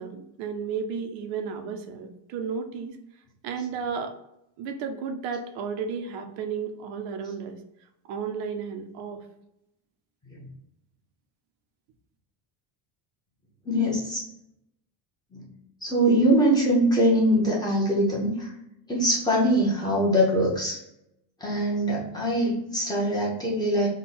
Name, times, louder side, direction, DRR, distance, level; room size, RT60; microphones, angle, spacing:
voice 1, 0.0-3.0 3.4-4.1 4.6-7.6 8.1-9.2, right 6 dB, 80° right, 6 dB, 0.7 m, -33 dB
voice 2, 13.7-14.2 15.3-15.4 15.8-18.5 18.9-20.8 21.4-23.9, equal, 10° left, -6 dB, 0.8 m, -23 dB
3.7 x 2.2 x 4.2 m, 0.82 s
cardioid pair, 175°, 47 cm